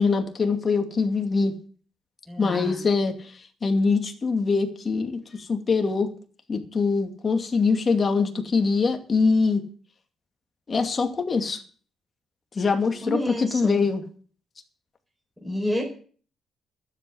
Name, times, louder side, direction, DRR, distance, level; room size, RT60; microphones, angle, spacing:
voice 1, 0.0-1.5 2.4-3.1 3.6-5.2 5.5-6.1 6.5-9.6 10.7-11.6 12.6-14.0, left 4 dB, 35° left, 5 dB, 2.4 m, -23 dB
voice 2, 2.3-2.8 12.8-13.8 15.4-15.8, left 1 dB, 5° right, -2 dB, 4.4 m, -30 dB
12.5 x 7.9 x 8.4 m, 0.44 s
cardioid pair, 90°, 0 cm